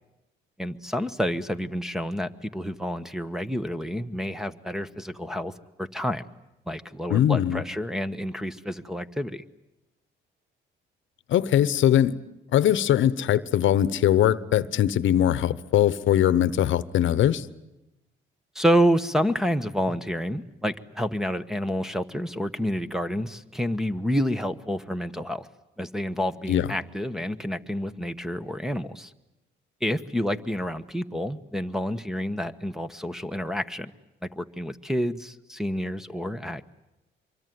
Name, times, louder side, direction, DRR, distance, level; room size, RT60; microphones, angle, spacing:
voice 1, 0.6-5.5 5.8-6.2 6.7-9.4 18.5-25.5 25.8-29.1 29.8-33.9 34.2-36.6, equal, ahead, 1.2 m, -28 dB
voice 2, 7.1-7.6 11.3-12.1 12.5-17.5 26.5-26.7, left 11 dB, 75° left, 1.0 m, -21 dB
25.5 x 23.5 x 9.5 m
cardioid pair, 90°, 20 cm